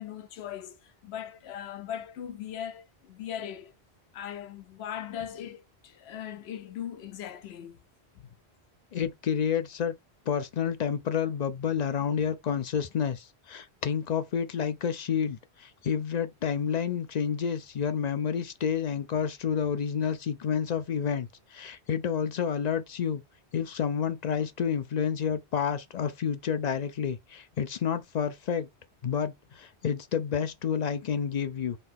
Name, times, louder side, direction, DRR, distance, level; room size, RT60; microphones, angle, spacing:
voice 1, 0.0-3.7 4.1-7.8 8.1-8.3, left 9 dB, 75° left, 0.9 m, -39 dB
voice 2, 8.9-9.9 10.3-23.2 23.5-28.7 29.0-31.8, left 7 dB, 55° left, 0.5 m, -29 dB
4.0 x 2.7 x 3.6 m
omnidirectional pair, 1.1 m